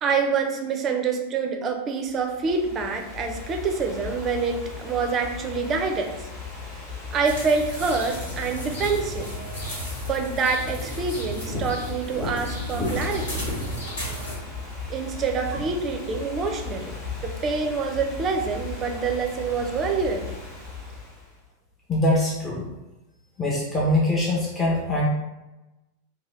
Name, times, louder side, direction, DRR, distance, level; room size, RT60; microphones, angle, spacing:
voice 1, 0.0-6.2 7.1-9.4 10.1-13.5 14.9-20.4, right 5 dB, 25° right, 4 dB, 0.4 m, -26 dB
Ocean / Fireworks, 2.1-21.4, left 4 dB, 35° left, 1.1 m, -36 dB
sound 1, 7.2-14.4, equal, 70° left, 1.5 m, -35 dB
voice 2, 21.9-22.7 23.4-25.1, left 1 dB, 20° left, -4 dB, 0.6 m, -23 dB
2.8 x 2.2 x 3.1 m, 1.0 s
figure-of-eight pair, 90°, 0 cm